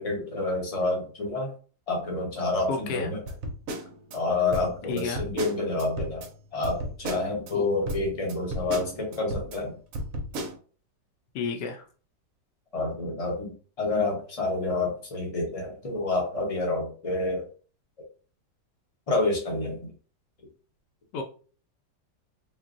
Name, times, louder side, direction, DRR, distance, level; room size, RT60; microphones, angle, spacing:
voice 1, 0.0-1.5 1.9-3.2 4.1-6.3 6.5-9.7 12.7-17.5 19.1-19.8, left 2 dB, 30° left, 0 dB, 0.7 m, -28 dB
voice 2, 2.7-3.1 4.9-5.2 7.5-7.7 11.3-11.9 21.1-21.2, left 5 dB, 75° left, 4 dB, 1.2 m, -31 dB
sound 1, 3.3-4.2 4.5-6.3 6.6-7.5 7.9-9.6 9.9-10.6, right 1 dB, 65° right, 0.9 m, -34 dB
3.7 x 2.4 x 2.5 m, 0.39 s
omnidirectional pair, 1.9 m